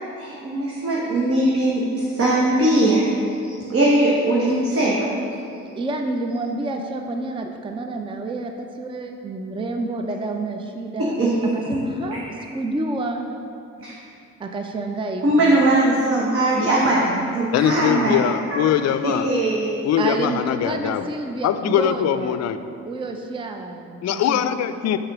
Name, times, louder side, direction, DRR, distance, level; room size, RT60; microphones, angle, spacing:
voice 1, 0.2-3.1 3.4-5.1 11.0-11.3 13.8-13.9 15.2-18.2 18.5-18.7 19.0-19.7, right 1 dB, 50° right, -4 dB, 1.2 m, -20 dB
voice 2, 5.8-11.1 11.5-13.3 14.4-15.6 20.0-22.4 22.9-24.4, right 2 dB, 15° right, 4 dB, 0.5 m, -29 dB
voice 3, 17.5-19.3 19.8-21.0 21.4-22.6 24.0-25.0, left 10 dB, 60° left, 11 dB, 0.4 m, -22 dB
6.6 x 4.2 x 6.0 m, 2.5 s
cardioid pair, 90°, 30 cm